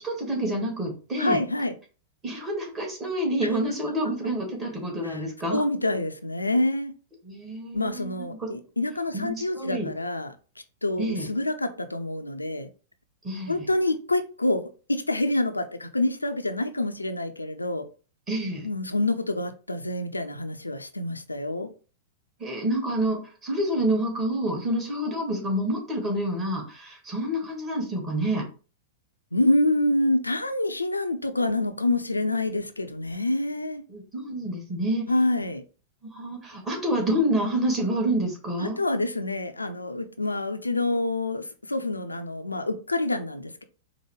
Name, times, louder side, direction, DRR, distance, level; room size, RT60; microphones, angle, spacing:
voice 1, 0.0-1.4 2.2-5.6 7.2-8.5 9.1-9.9 11.0-11.3 13.2-13.6 18.3-18.7 22.4-28.4 33.9-35.1 36.1-38.8, right 1 dB, 25° right, 1.7 m, -28 dB
voice 2, 1.2-1.7 5.0-6.9 7.7-10.4 10.8-12.7 13.5-14.6 14.9-17.8 18.6-21.7 29.3-33.8 35.1-35.6 38.6-43.6, left 2 dB, 90° left, 0.4 m, -27 dB
4.6 x 2.1 x 3.2 m
figure-of-eight pair, 100°, 0 cm